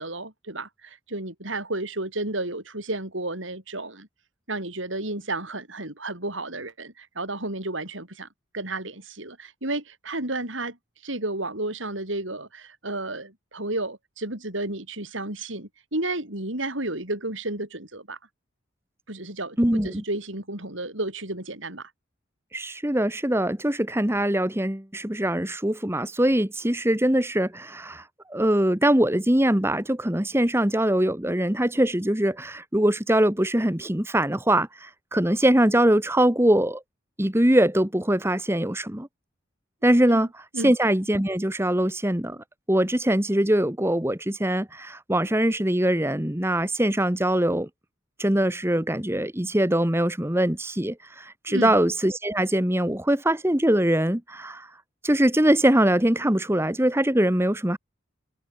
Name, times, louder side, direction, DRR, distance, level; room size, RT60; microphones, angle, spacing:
voice 1, 0.0-4.1 4.5-8.3 8.5-10.8 11.0-18.2 19.1-21.9 40.1-40.3 40.5-40.7 51.5-51.8, right 2 dB, 70° right, 7.0 m, -32 dB
voice 2, 19.6-20.0 22.5-28.0 28.3-36.8 37.2-39.1 39.8-40.3 40.6-42.4 42.7-47.7 48.2-54.7 55.0-57.8, right 1 dB, 10° right, 1.4 m, -22 dB
head